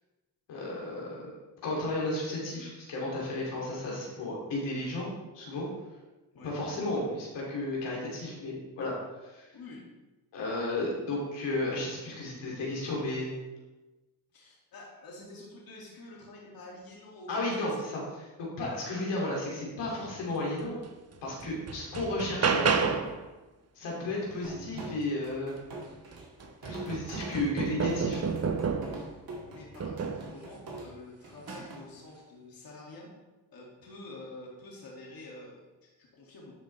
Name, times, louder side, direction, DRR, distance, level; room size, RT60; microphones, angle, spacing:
voice 1, 0.5-1.3 1.6-5.7 6.4-9.5 10.3-13.3 17.3-18.0 18.4-20.8 21.2-22.9 23.7-25.5 26.6-28.2, left 2 dB, 80° left, -4 dB, 2.6 m, -33 dB
voice 2, 6.4-6.8 9.5-9.8 14.3-17.9 28.9-29.2 29.5-33.1 33.5-36.5, left 2 dB, 55° left, -4 dB, 2.3 m, -48 dB
sound 1, 20.8-20.9 21.4-23.2 25.6-25.7 26.1-29.1 29.8-30.3 31.4-31.6, right 5 dB, 35° right, 0.8 m, -30 dB
sound 2, 24.4-31.8, right 1 dB, 55° right, 2.1 m, -44 dB
11.5 x 5.0 x 3.3 m, 1.1 s
supercardioid pair, 65°, 42 cm